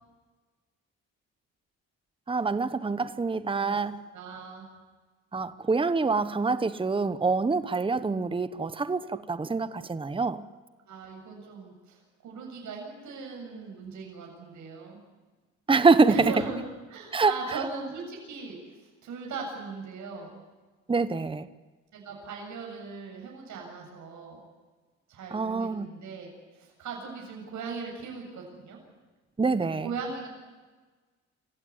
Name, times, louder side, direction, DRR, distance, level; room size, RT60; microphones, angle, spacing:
voice 1, 2.3-4.0 5.3-10.4 15.7-16.3 17.1-17.3 20.9-21.5 25.3-25.9 29.4-29.9, right 4 dB, 15° right, 1.0 m, -25 dB
voice 2, 4.1-4.7 10.9-15.0 16.1-16.6 16.9-18.6 19.0-20.4 21.9-24.5 25.1-28.8 29.8-30.3, right 4 dB, 70° right, 7.4 m, -39 dB
26.0 x 16.0 x 9.9 m
cardioid pair, 90°, 30 cm